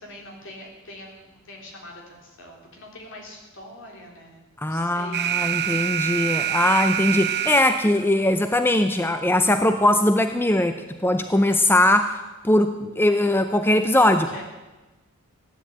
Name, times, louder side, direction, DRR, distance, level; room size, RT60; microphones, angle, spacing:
voice 1, 0.0-4.4 4.7-5.2 14.1-14.4, left 1 dB, 60° left, 0 dB, 3.8 m, -43 dB
voice 2, 4.6-12.2 12.4-14.3, left 1 dB, 10° left, 8 dB, 0.5 m, -20 dB
Alarm, 5.1-8.1, right 10 dB, 50° right, 0.6 m, -26 dB
15.5 x 10.0 x 8.5 m, 1.2 s
head